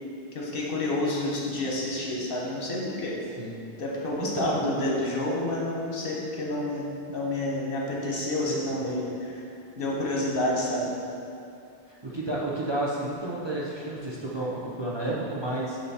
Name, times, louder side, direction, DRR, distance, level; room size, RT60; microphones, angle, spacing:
voice 1, 0.3-3.2 3.8-9.4 9.8-10.9, left 1 dB, 65° left, -3 dB, 1.2 m, -29 dB
voice 2, 4.2-5.3 8.4-9.0 11.9-15.8, right 1 dB, 30° right, -6 dB, 0.6 m, -32 dB
6.9 x 2.9 x 5.5 m, 2.7 s
omnidirectional pair, 1.0 m